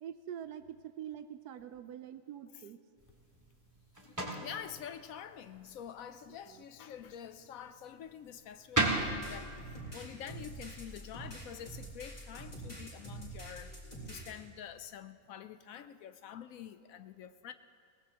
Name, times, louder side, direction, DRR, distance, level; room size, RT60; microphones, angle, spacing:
voice 1, 0.0-2.8 6.4-6.6 10.1-10.5 13.6-14.3, right 10 dB, 85° right, 10 dB, 1.2 m, -46 dB
sound 1, 3.0-12.1, right 2 dB, 10° right, 1.8 m, -40 dB
voice 2, 4.0-13.8 14.1-17.5, left 9 dB, 70° left, 11 dB, 1.0 m, -47 dB
sound 2, 8.9-14.3, right 1 dB, 25° left, 3.5 m, -46 dB
21.5 x 18.0 x 2.9 m, 2.4 s
omnidirectional pair, 1.6 m